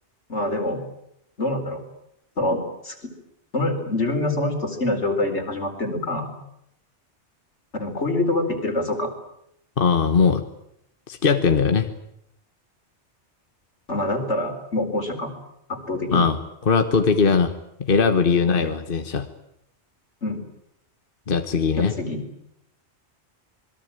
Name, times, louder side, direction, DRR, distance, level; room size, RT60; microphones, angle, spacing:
voice 1, 0.3-0.8 1.4-1.8 2.4-3.1 3.5-6.3 7.7-9.1 13.9-15.3 15.7-16.3 18.4-18.7 20.2-20.4 21.8-22.2, left 2 dB, 80° left, 4 dB, 4.7 m, -25 dB
voice 2, 9.8-10.4 11.1-11.9 16.1-16.4 16.6-17.5 17.8-19.3 21.3-21.9, left 5 dB, 50° left, 8 dB, 1.5 m, -20 dB
27.0 x 22.0 x 9.0 m, 0.78 s
omnidirectional pair, 1.2 m